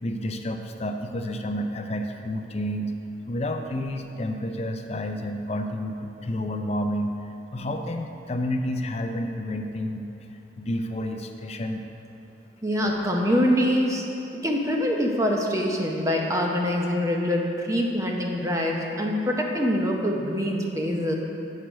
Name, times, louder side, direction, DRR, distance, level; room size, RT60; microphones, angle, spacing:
voice 1, 0.0-2.9 3.3-10.1 10.6-11.8, left 1 dB, 35° left, 4 dB, 0.5 m, -30 dB
voice 2, 12.6-14.0 14.4-21.1, equal, 15° right, 0 dB, 0.8 m, -24 dB
7.4 x 6.5 x 5.2 m, 2.9 s
head